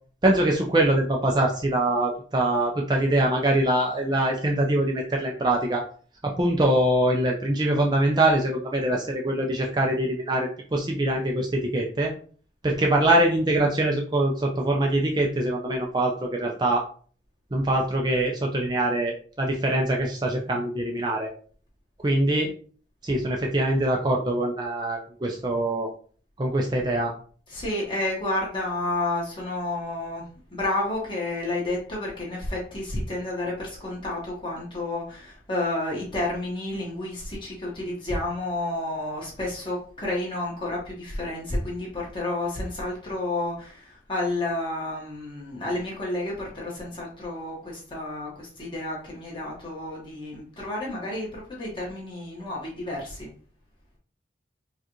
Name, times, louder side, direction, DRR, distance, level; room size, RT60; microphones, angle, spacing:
voice 1, 0.2-5.8 6.2-12.1 12.6-16.9 17.5-21.3 22.0-22.5 23.0-25.9 26.4-27.1, right 1 dB, 25° right, 0 dB, 0.4 m, -23 dB
voice 2, 27.5-53.3, left 2 dB, 25° left, -4 dB, 1.4 m, -30 dB
4.6 x 2.4 x 3.0 m, 0.43 s
head